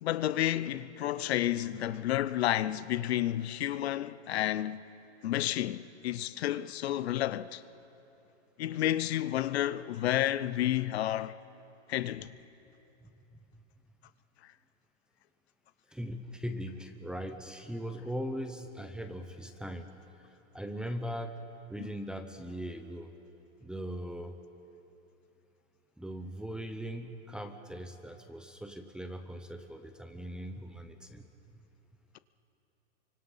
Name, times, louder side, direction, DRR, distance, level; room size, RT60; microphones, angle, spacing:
voice 1, 0.0-4.8 5.2-7.6 8.6-11.4 11.9-12.3, left 13 dB, 60° left, 0.8 m, -31 dB
voice 2, 15.9-19.9 20.2-21.4 21.7-23.1 23.6-24.4 26.0-31.3, equal, ahead, 0.7 m, -40 dB
29.5 x 25.0 x 5.7 m
hypercardioid pair, 145°, 36 cm